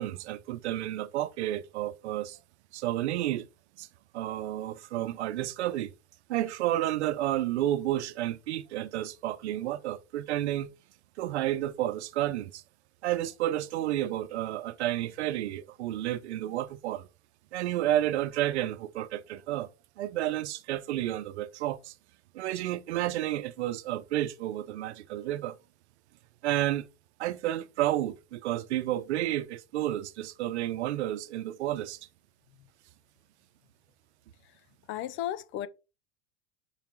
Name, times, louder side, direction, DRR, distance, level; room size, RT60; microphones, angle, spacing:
voice 1, 0.0-2.4 2.7-3.5 3.8-3.9 4.1-5.9 6.3-10.7 11.2-12.6 13.0-17.1 17.5-19.7 20.0-21.9 22.3-25.6 26.4-26.9 27.2-32.0, right 13 dB, 90° right, 0.8 m, -31 dB
voice 2, 34.9-35.7, left 12 dB, 40° left, 0.6 m, -34 dB
5.7 x 5.0 x 4.5 m
supercardioid pair, 135°, 33 cm